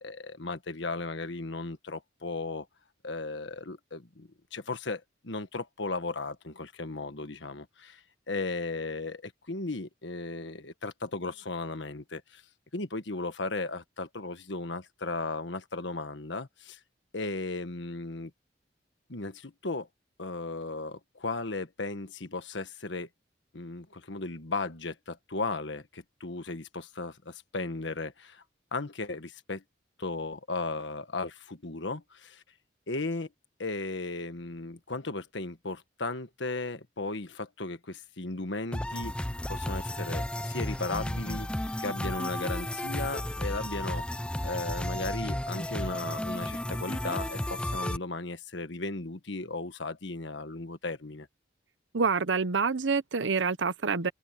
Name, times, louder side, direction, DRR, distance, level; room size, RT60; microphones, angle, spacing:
voice 1, 0.0-2.7 3.0-12.4 12.7-16.8 17.1-18.3 19.1-19.9 20.2-23.1 23.5-28.4 28.7-29.6 30.0-32.4 32.9-33.3 33.6-41.5 41.8-44.0 44.4-51.3, left 3 dB, 75° left, 1.5 m, -36 dB
sound 1, 38.7-48.0, left 1 dB, 5° left, 0.5 m, -33 dB
voice 2, 51.9-54.1, right 5 dB, 80° right, 0.8 m, -27 dB
open air
head